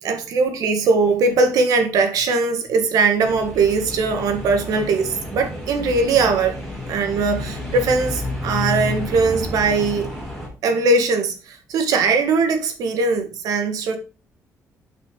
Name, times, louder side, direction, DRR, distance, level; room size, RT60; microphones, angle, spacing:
voice 1, 0.0-6.6 6.9-10.1 10.6-14.0, right 4 dB, 85° right, 1.6 m, -20 dB
sound 1, 3.2-10.5, left 2 dB, ahead, 3.7 m, -30 dB
8.5 x 5.7 x 3.7 m
cardioid pair, 165°, 6 cm